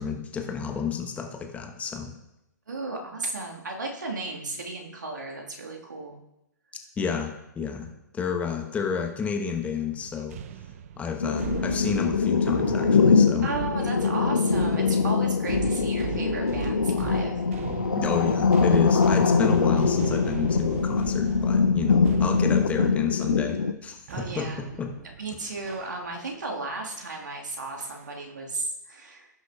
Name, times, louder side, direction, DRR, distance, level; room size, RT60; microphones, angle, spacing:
voice 1, 0.0-2.1 7.0-7.9 8.1-10.4 11.0-13.5 18.0-24.1 24.4-24.9, left 6 dB, 15° left, 3 dB, 1.0 m, -30 dB
voice 2, 2.7-6.2 13.4-17.4 24.1-24.6 25.2-29.3, right 3 dB, 70° right, 0 dB, 1.7 m, -34 dB
sound 1, 9.9-26.4 26.9-27.2 27.8-28.3, right 10 dB, 45° right, 0.5 m, -38 dB
sound 2, 11.2-23.7, left 5 dB, 80° left, 0.5 m, -23 dB
16.5 x 6.3 x 2.4 m, 0.87 s
figure-of-eight pair, 120°, 10 cm